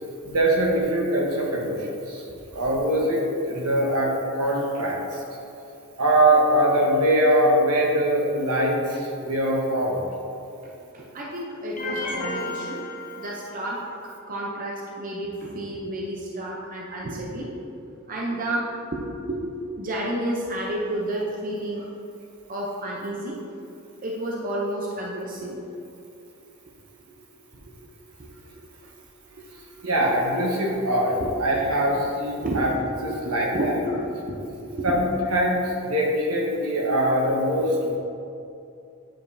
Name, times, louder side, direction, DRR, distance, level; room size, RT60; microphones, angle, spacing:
voice 1, 0.2-1.8 2.1-2.2 2.5-4.1 4.4-5.0 6.0-10.0 29.8-32.7 33.0-33.7 34.8-38.0, right 1 dB, 75° right, -2 dB, 1.1 m, -22 dB
voice 2, 10.6-12.8 13.2-13.8 14.3-17.7 18.1-19.5 19.7-21.9 22.5-23.4 24.0-25.6 27.1-27.2 27.5-27.6 28.2-28.7 31.2-31.3 32.4-32.6 33.0-34.9, right 1 dB, 40° right, -3 dB, 0.6 m, -31 dB
sound 1, 11.8-13.9, left 2 dB, 35° left, 0.7 m, -33 dB
9.0 x 5.0 x 2.7 m, 2.6 s
head